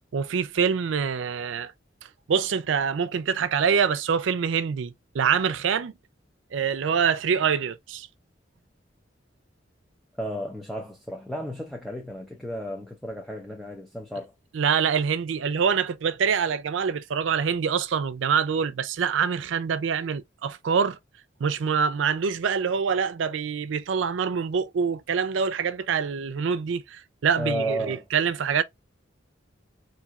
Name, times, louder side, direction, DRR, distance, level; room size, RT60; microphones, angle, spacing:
voice 1, 0.1-1.7 2.3-5.9 6.5-8.1 14.5-21.0 21.4-28.6, right 6 dB, 85° right, 0.4 m, -25 dB
voice 2, 10.2-14.3 27.4-28.0, right 1 dB, ahead, 0.6 m, -33 dB
4.1 x 2.7 x 2.3 m
head